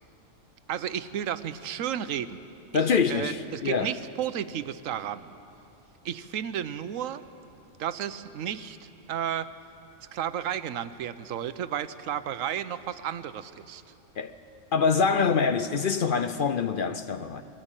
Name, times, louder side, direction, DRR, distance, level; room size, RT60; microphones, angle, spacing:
voice 1, 0.7-2.4 2.7-5.3 6.0-7.2 7.8-9.5 10.1-13.8, right 9 dB, 85° right, 1.1 m, -33 dB
voice 2, 2.7-3.9 14.2-14.3 14.7-17.4, left 5 dB, 55° left, 0.7 m, -25 dB
21.0 x 14.5 x 8.9 m
omnidirectional pair, 1.3 m